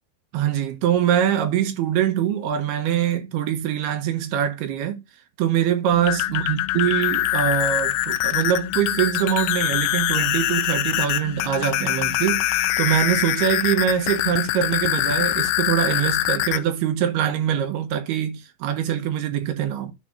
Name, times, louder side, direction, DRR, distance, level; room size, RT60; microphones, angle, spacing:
voice 1, 0.3-5.0 5.4-19.9, right 10 dB, 70° right, 2.9 m, -23 dB
sound 1, 5.9-16.6, left 14 dB, 85° left, 2.9 m, -24 dB
10.0 x 3.4 x 5.1 m
omnidirectional pair, 5.3 m